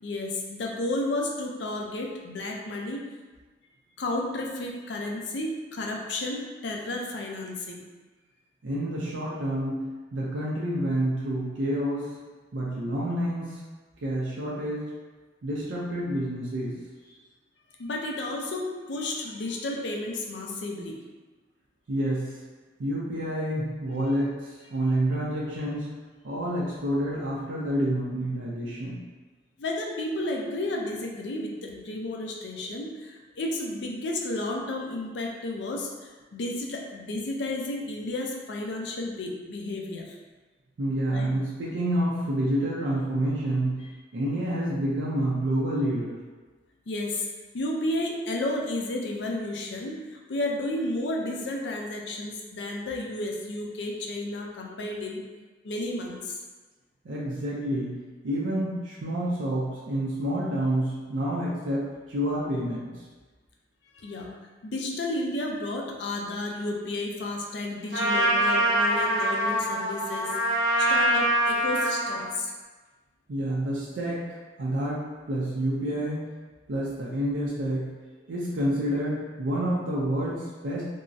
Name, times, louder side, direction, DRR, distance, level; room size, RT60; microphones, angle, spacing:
voice 1, 0.0-3.0 4.0-7.8 17.8-21.0 29.6-40.1 41.1-41.3 46.9-47.3 47.5-55.2 55.6-56.4 63.9-64.3 64.6-70.3 70.8-72.5, left 2 dB, 70° left, 0 dB, 0.5 m, -32 dB
voice 2, 8.6-9.8 10.1-12.1 12.5-13.6 14.0-14.9 15.4-16.7 21.9-22.3 22.8-25.9 26.2-29.0 40.8-43.8 44.1-46.2 57.0-58.0 58.2-62.9 73.3-74.2 74.6-75.0 75.3-76.2 76.7-77.9 78.3-80.8, right 1 dB, 90° right, -6 dB, 0.5 m, -28 dB
Trumpet, 67.9-72.2, right 1 dB, 65° right, 0.8 m, -24 dB
3.6 x 2.0 x 2.6 m, 1.3 s
head